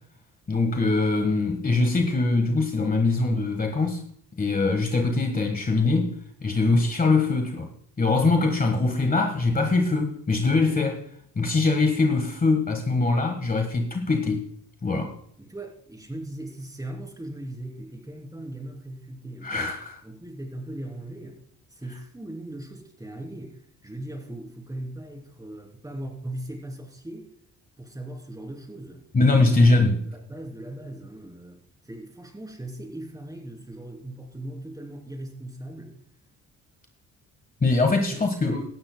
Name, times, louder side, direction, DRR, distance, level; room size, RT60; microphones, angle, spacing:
voice 1, 0.5-4.0 4.4-6.1 6.4-7.7 8.0-11.0 11.3-14.4 14.8-15.2 19.4-20.0 29.1-30.0 37.6-38.6, left 3 dB, 30° left, 1.4 m, -22 dB
voice 2, 15.4-19.5 20.0-21.4 21.7-27.3 27.8-29.0 29.4-29.5 30.1-36.0 38.4-38.6, right 1 dB, 10° right, 3.0 m, -39 dB
17.5 x 12.5 x 2.2 m
cardioid pair, 90°, 30 cm